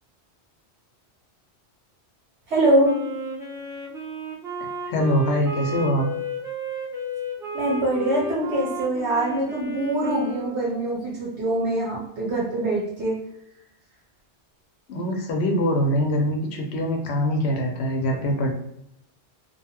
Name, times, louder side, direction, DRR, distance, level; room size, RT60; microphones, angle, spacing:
voice 1, 2.5-3.0 7.5-13.2, right 1 dB, 85° right, -6 dB, 1.3 m, -23 dB
Wind instrument woodwind instrument, 2.8-11.0, equal, 5° right, 0.5 m, -33 dB
voice 2, 4.9-6.1 14.9-18.5, equal, 75° left, 2 dB, 0.9 m, -23 dB
2.6 x 2.3 x 2.8 m, 0.79 s
omnidirectional pair, 1.1 m